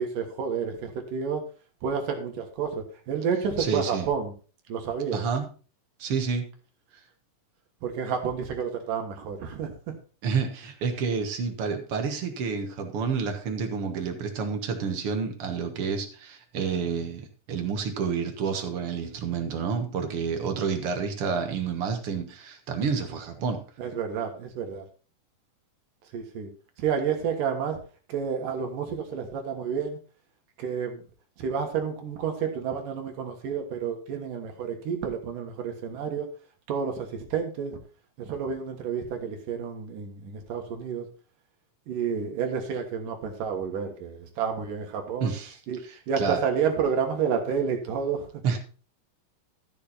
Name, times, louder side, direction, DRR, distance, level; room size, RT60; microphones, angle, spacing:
voice 1, 0.0-1.4 1.8-4.3 4.7-5.2 7.8-9.9 23.8-24.9 26.1-26.5 26.8-27.8 28.1-30.0 30.6-31.0 31.4-36.3 36.7-37.8 38.2-41.1 41.9-45.3 45.7-45.8 46.1-48.3, right 6 dB, 75° right, 4 dB, 3.1 m, -30 dB
voice 2, 3.6-4.1 5.1-5.5 6.0-6.5 10.2-23.6 45.2-45.6 46.2-46.4 48.4-48.6, right 5 dB, 55° right, 6 dB, 1.9 m, -29 dB
13.0 x 7.1 x 4.2 m, 0.37 s
omnidirectional pair, 3.9 m